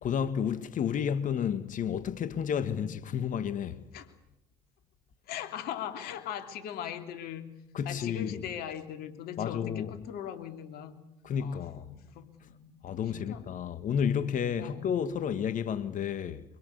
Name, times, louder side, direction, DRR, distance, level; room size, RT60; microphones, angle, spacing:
voice 1, 0.0-3.8 7.7-8.3 9.4-9.9 11.2-11.8 12.8-16.4, left 8 dB, 55° left, 1.8 m, -31 dB
voice 2, 5.3-7.6 7.8-11.0 11.4-13.6 14.6-14.8, left 9 dB, 70° left, 3.1 m, -40 dB
25.0 x 23.0 x 8.3 m
supercardioid pair, 70°, 16 cm